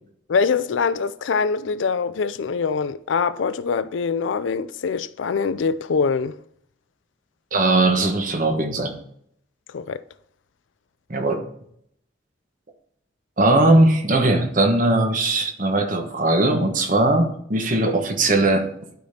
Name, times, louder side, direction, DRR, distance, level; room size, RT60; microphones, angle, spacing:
voice 1, 0.3-6.3 9.7-10.0, left 5 dB, 85° left, 0.4 m, -23 dB
voice 2, 7.5-9.0 11.1-11.4 13.4-18.7, right 2 dB, 45° right, 1.2 m, -19 dB
12.0 x 5.1 x 2.8 m
head